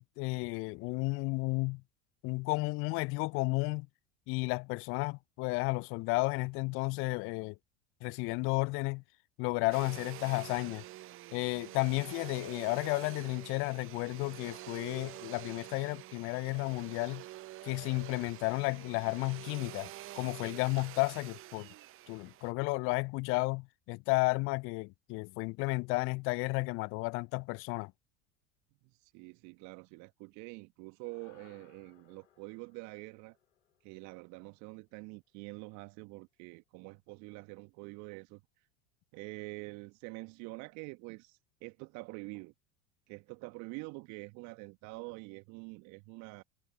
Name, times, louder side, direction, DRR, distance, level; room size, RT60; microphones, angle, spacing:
voice 1, 0.0-1.8 2.2-3.9 4.3-7.6 8.0-9.0 9.4-10.8 11.3-17.2 17.6-19.9 20.2-21.7 22.1-27.9, left 27 dB, 40° left, 0.4 m, -33 dB
Domestic sounds home sounds, 9.7-22.5, right 15 dB, 35° right, 0.8 m, -47 dB
voice 2, 29.0-33.4 33.8-38.4 39.1-42.5 43.1-46.4, right 27 dB, 55° right, 1.5 m, -46 dB
sound 1, 31.0-35.5, left 9 dB, 80° left, 2.0 m, -66 dB
figure-of-eight pair, 75°, 35 cm